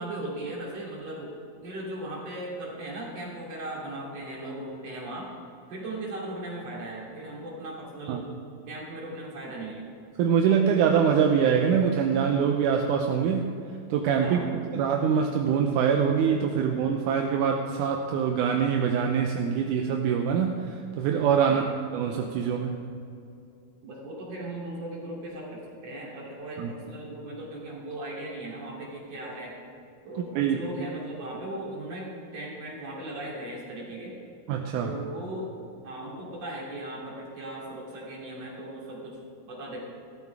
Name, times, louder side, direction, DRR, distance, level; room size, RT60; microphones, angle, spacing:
voice 1, 0.0-5.3 5.7-8.3 8.7-9.9 14.2-14.6 21.5-21.7 23.8-29.6 30.0-34.2 34.8-35.5 35.8-39.2 39.5-39.9, right 1 dB, 50° right, -4 dB, 3.8 m, -38 dB
voice 2, 10.2-13.5 13.9-21.6 21.9-22.8 26.6-26.7 30.4-30.6 34.5-34.9, right 7 dB, 80° right, 2 dB, 2.1 m, -24 dB
15.0 x 13.0 x 3.5 m, 2.5 s
omnidirectional pair, 3.8 m